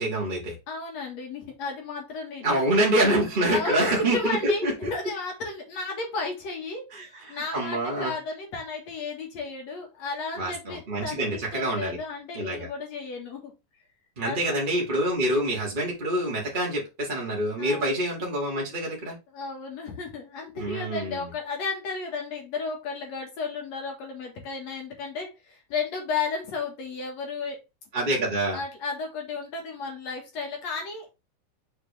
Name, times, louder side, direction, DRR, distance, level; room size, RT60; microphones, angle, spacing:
voice 1, 0.0-0.5 2.4-4.9 6.9-8.1 10.4-12.0 12.3-12.7 14.2-19.2 20.6-21.2 27.9-28.6, right 1 dB, 20° right, -3 dB, 1.7 m, -26 dB
voice 2, 0.7-2.6 3.5-13.5 14.2-14.6 17.6-18.0 19.3-27.6 28.5-31.1, left 4 dB, 55° left, 1 dB, 2.7 m, -33 dB
6.6 x 4.7 x 3.4 m, 0.24 s
omnidirectional pair, 3.8 m